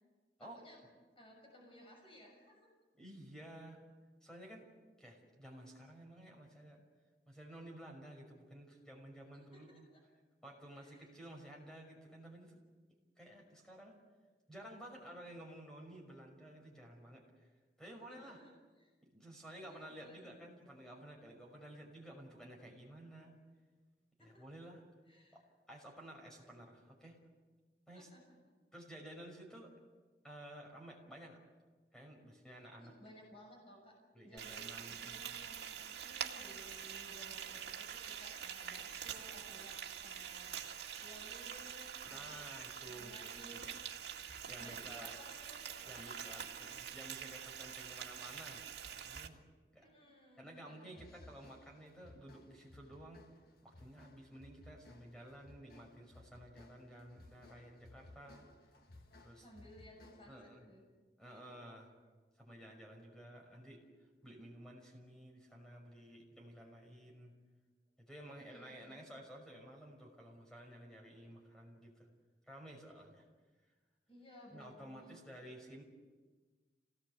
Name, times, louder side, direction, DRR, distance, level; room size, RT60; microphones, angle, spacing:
voice 1, 0.4-0.9 1.1-2.7 9.3-10.0 10.7-11.2 18.1-18.9 19.6-20.3 20.6-20.9 24.2-24.4 25.0-25.4 27.9-28.4 32.5-33.9 34.2-34.6 34.9-42.6 42.8-43.8 44.6-46.7 49.8-51.2 59.4-60.4 60.6-60.8 61.5-61.6 68.3-69.0 74.1-75.2, equal, 35° left, -1 dB, 6.6 m, -59 dB
voice 2, 3.0-3.8 4.2-4.7 5.0-6.8 7.3-9.8 10.4-12.6 13.2-14.0 14.5-17.2 17.8-18.4 19.0-23.4 24.2-24.8 25.3-25.4 25.7-27.2 27.9-28.1 28.7-29.7 30.2-31.4 31.9-32.9 34.1-35.1 42.0-43.1 43.5-43.6 44.4-45.1 45.8-48.7 49.0-49.4 49.7-49.9 50.4-53.2 53.6-58.4 59.2-59.5 60.3-60.6 61.2-61.9 62.4-63.8 64.2-67.3 68.0-72.1 72.5-73.3 74.5-75.8, right 1 dB, 5° left, 0 dB, 5.8 m, -53 dB
Frying (food), 34.4-49.3, right 8 dB, 80° right, 2.2 m, -46 dB
sound 1, 50.9-60.5, left 2 dB, 60° left, 1.8 m, -60 dB
27.0 x 18.5 x 8.2 m, 1.3 s
head